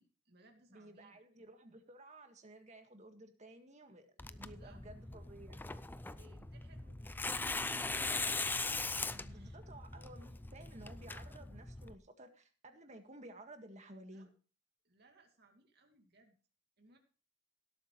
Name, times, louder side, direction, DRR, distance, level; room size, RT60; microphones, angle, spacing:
voice 1, 0.0-1.2 4.2-4.8 6.0-8.9 9.3-9.6 14.1-14.3 14.8-16.4 16.8-17.0, right 1 dB, 60° right, 2 dB, 2.5 m, -65 dB
voice 2, 0.7-4.1 4.4-5.7 9.1-14.3, right 1 dB, 40° right, 6 dB, 1.8 m, -55 dB
Tearing, 4.2-11.9, left 3 dB, 10° left, 0.4 m, -40 dB
17.5 x 8.3 x 3.1 m, 0.37 s
head